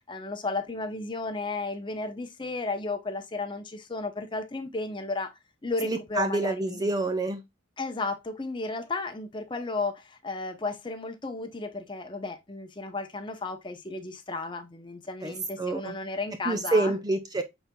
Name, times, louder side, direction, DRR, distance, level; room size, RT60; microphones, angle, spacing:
voice 1, 0.1-5.3 5.6-6.9 7.8-17.0, left 3 dB, 25° left, 0.7 m, -33 dB
voice 2, 5.8-7.4 15.2-15.9 16.4-17.4, right 2 dB, 20° right, 0.5 m, -27 dB
6.0 x 4.0 x 2.2 m
head